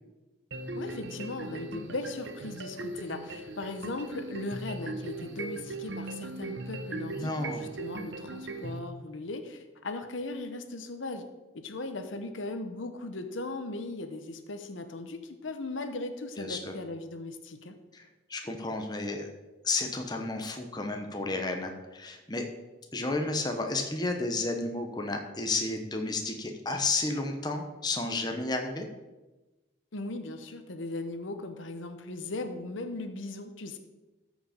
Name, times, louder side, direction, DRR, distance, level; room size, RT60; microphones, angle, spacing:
sound 1, 0.5-8.8, right 2 dB, 65° right, 0.8 m, -39 dB
voice 1, 0.7-11.2 11.5-17.8 29.9-33.8, left 2 dB, 75° left, 7 dB, 0.9 m, -38 dB
voice 2, 7.1-7.6 16.4-16.7 17.9-18.0 18.3-19.3 19.6-22.5 22.9-28.9, left 2 dB, 20° left, 3 dB, 0.9 m, -32 dB
13.5 x 5.2 x 5.1 m, 1.1 s
head